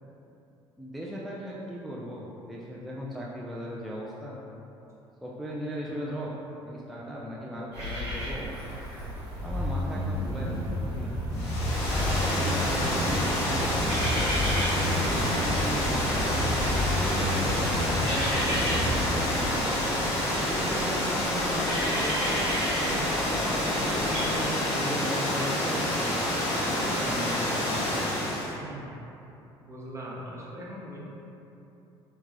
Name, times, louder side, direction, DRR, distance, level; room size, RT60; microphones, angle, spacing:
voice 1, 0.8-4.4 5.2-6.3 6.6-8.5 9.4-11.1 11.9-14.4 14.7-16.6 17.1-19.9 20.5-22.6 23.1-26.4 26.7-28.0, equal, ahead, -5 dB, 0.3 m, -37 dB
sound 1, 7.7-24.2, equal, 75° right, 1.0 m, -36 dB
Bass guitar, 9.5-19.1, equal, 25° left, 0.8 m, -31 dB
Water, 11.3-28.5, left 1 dB, 55° left, 0.8 m, -28 dB
voice 2, 28.5-29.1 29.6-31.0, equal, 20° right, -5 dB, 0.7 m, -41 dB
3.4 x 2.2 x 3.0 m, 2.9 s
figure-of-eight pair, 55°, 14 cm